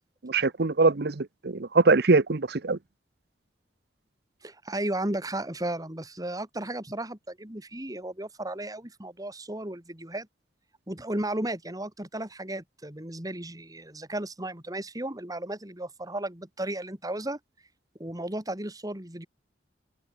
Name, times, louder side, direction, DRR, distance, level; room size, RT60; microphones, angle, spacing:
voice 1, 0.2-2.8, right 3 dB, 60° right, 0.9 m, -23 dB
voice 2, 4.4-10.3 10.9-17.4 18.0-19.3, right 1 dB, 20° right, 3.0 m, -34 dB
head